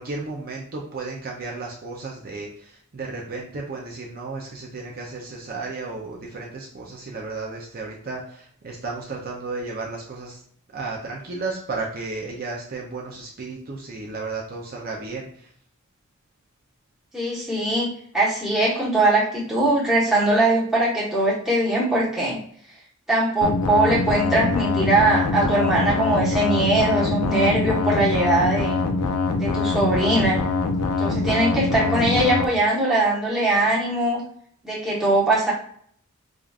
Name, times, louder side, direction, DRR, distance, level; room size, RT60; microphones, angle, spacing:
voice 1, 0.0-10.4 10.7-15.5, right 3 dB, 40° right, -2 dB, 0.5 m, -33 dB
voice 2, 17.1-22.4 23.1-28.8 29.4-30.4 31.0-34.2 34.6-35.5, right 2 dB, ahead, -7 dB, 1.1 m, -21 dB
sound 1, 23.4-32.4, left 3 dB, 90° left, 0.5 m, -24 dB
4.9 x 2.4 x 2.4 m, 0.63 s
head